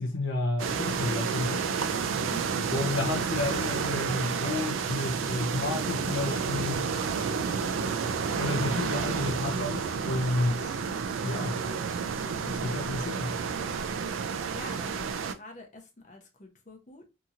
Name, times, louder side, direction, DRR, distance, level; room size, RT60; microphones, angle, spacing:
voice 1, 0.0-1.7 2.7-6.8 8.4-10.8 11.2-11.6 12.5-13.4, left 2 dB, 70° left, 0.4 m, -31 dB
sound 1, 0.6-15.3, right 6 dB, 85° right, 0.4 m, -30 dB
voice 2, 2.3-2.8 7.8-8.0 14.5-17.0, left 2 dB, 40° left, 0.7 m, -46 dB
2.8 x 2.7 x 2.4 m
head